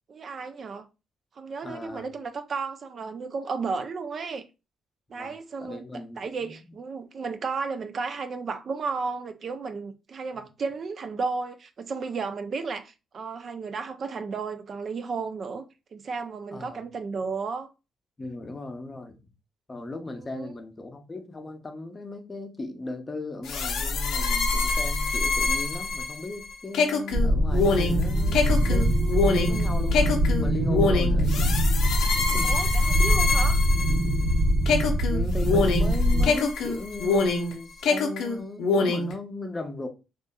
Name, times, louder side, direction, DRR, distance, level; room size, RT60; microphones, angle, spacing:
voice 1, 0.1-0.9 1.4-4.5 5.1-5.8 6.2-15.7 15.9-17.7 20.2-20.5 32.4-33.6, right 4 dB, 50° right, 0.3 m, -33 dB
voice 2, 1.6-2.1 5.1-5.3 5.6-6.6 10.3-10.4 16.5-16.8 18.2-19.1 19.7-31.5 32.2-32.6 35.1-39.9, left 2 dB, 25° left, 0.6 m, -37 dB
sound 1, 23.4-34.3 34.7-37.5 37.8-39.1, left 3 dB, 75° left, 0.5 m, -25 dB
Distant bombing, 27.1-36.3, equal, 75° right, 1.0 m, -23 dB
2.6 x 2.4 x 2.3 m
cardioid pair, 90°, 0 cm